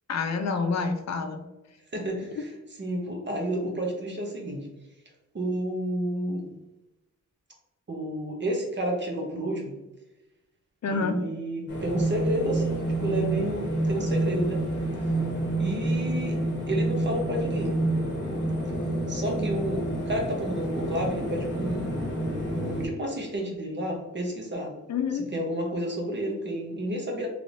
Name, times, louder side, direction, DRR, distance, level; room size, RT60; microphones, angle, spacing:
voice 1, 0.1-1.4 10.8-11.2 24.9-25.3, left 4 dB, 65° left, 6 dB, 0.5 m, -27 dB
voice 2, 1.9-2.5 2.8-4.7 5.3-6.5 7.9-9.8 10.9-14.6 15.6-16.4 16.7-17.8 19.1-22.0 22.5-24.7 25.3-27.3, right 1 dB, 40° right, 0 dB, 0.9 m, -31 dB
sound 1, 11.7-22.9, right 1 dB, 40° left, 1.1 m, -28 dB
3.3 x 3.1 x 2.6 m, 1.0 s
wide cardioid pair, 135°, 30 cm